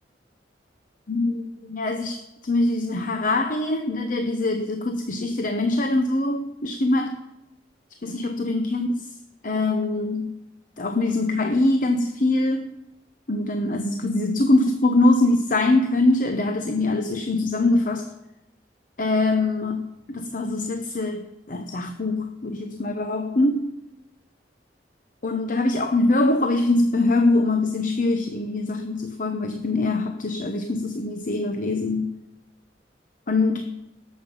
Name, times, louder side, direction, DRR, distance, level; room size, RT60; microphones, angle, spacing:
voice 1, 1.1-7.2 8.0-9.1 9.4-10.4 10.8-12.7 13.3-18.1 19.0-23.7 25.2-32.2 33.3-33.8, left 2 dB, 50° left, 6 dB, 0.9 m, -23 dB
18.5 x 7.6 x 5.4 m, 0.91 s
head